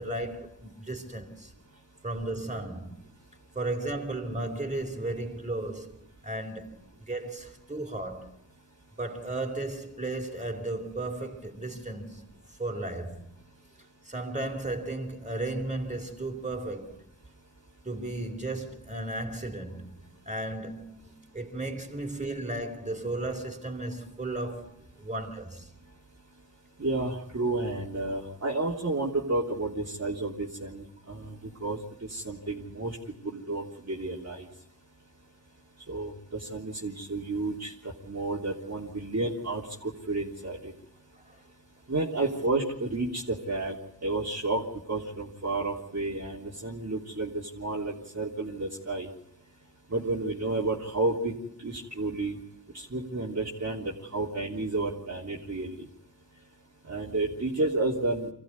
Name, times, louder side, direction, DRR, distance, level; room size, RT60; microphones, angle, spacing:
voice 1, 0.0-1.5 2.0-3.0 3.5-8.3 9.0-12.2 12.6-13.3 14.0-17.0 17.8-25.7 31.1-31.2 41.3-41.4, right 2 dB, 15° right, 4.3 m, -35 dB
voice 2, 26.8-33.0 33.2-34.5 35.9-40.7 41.9-49.1 49.9-52.4 52.7-55.9 56.9-58.3, right 2 dB, 35° right, 3.3 m, -31 dB
24.5 x 15.0 x 9.6 m
cardioid pair, 45°, 43 cm